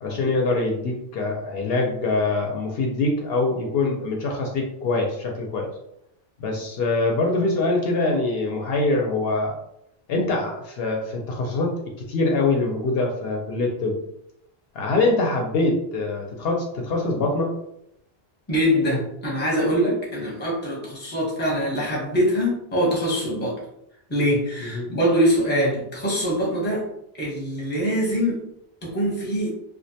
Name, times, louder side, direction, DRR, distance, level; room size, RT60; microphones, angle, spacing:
voice 1, 0.0-5.7 6.4-9.5 10.1-11.7 12.1-14.0 14.7-17.5 24.6-24.9, left 2 dB, 70° left, 1 dB, 0.7 m, -24 dB
voice 2, 18.5-23.6 24.1-26.8 27.2-28.4 28.8-29.5, equal, 10° left, -4 dB, 0.7 m, -23 dB
2.4 x 2.2 x 2.7 m, 0.78 s
omnidirectional pair, 1.1 m